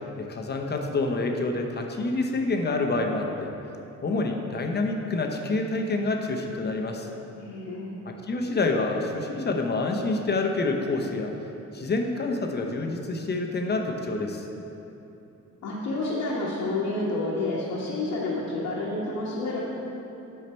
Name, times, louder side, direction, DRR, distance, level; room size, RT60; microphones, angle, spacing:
voice 1, 0.2-3.5 4.0-7.1 8.1-11.3 11.7-14.4, left 3 dB, 35° left, 3 dB, 0.9 m, -27 dB
voice 2, 7.4-7.9 15.6-19.6, left 2 dB, 70° left, -7 dB, 1.3 m, -29 dB
8.5 x 5.8 x 4.4 m, 3.0 s
cardioid pair, 90°, 30 cm